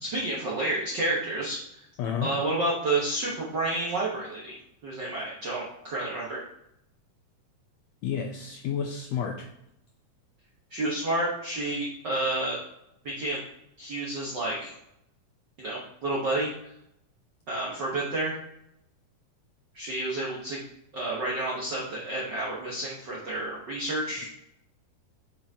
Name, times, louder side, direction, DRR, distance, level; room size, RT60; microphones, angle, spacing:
voice 1, 0.0-1.8 2.2-4.6 4.8-6.5 10.7-12.6 13.0-13.4 13.8-14.7 15.6-16.5 17.5-18.4 19.7-20.6 20.9-24.3, right 2 dB, 65° right, -5 dB, 1.0 m, -30 dB
voice 2, 2.0-2.3 8.0-9.5, left 7 dB, 80° left, 1 dB, 1.5 m, -30 dB
8.6 x 5.8 x 2.8 m, 0.80 s
omnidirectional pair, 3.7 m